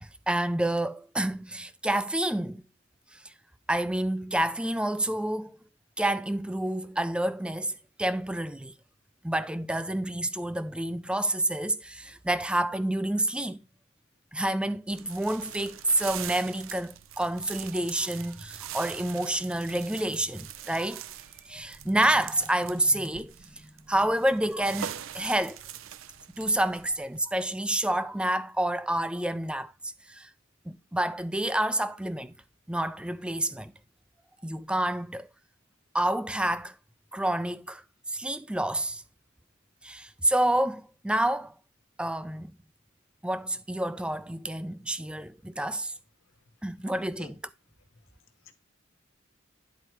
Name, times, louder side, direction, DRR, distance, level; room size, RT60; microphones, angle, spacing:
voice 1, 0.0-2.6 3.1-3.3 3.7-5.6 6.0-8.8 9.2-13.6 14.3-21.0 21.4-25.6 26.3-30.3 30.7-32.3 32.7-33.7 34.4-35.3 35.9-36.8 37.1-39.0 39.8-41.5 42.0-42.6 43.2-45.9 46.6-47.3, right 1 dB, 5° right, 0.4 m, -29 dB
sound 1, 14.9-27.2, right 10 dB, 85° right, 0.5 m, -43 dB
voice 2, 48.1-48.5, left 5 dB, 90° left, 0.9 m, -52 dB
10.5 x 4.5 x 3.0 m
head